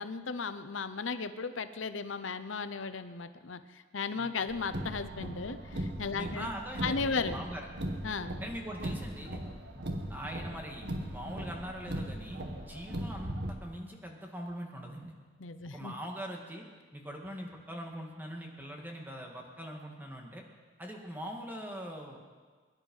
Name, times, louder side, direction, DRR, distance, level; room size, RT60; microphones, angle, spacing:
voice 1, 0.0-6.5 6.8-7.4 8.0-8.3 15.4-15.9, left 4 dB, 90° left, 11 dB, 0.8 m, -35 dB
Car, 4.5-13.5, right 1 dB, 60° right, 1.8 m, -39 dB
voice 2, 6.1-7.7 8.4-9.4 9.7-9.8 10.1-15.1 15.6-16.6 16.9-20.4 20.8-22.2, equal, 10° right, 1 dB, 2.1 m, -42 dB
22.0 x 11.0 x 5.5 m, 1.5 s
head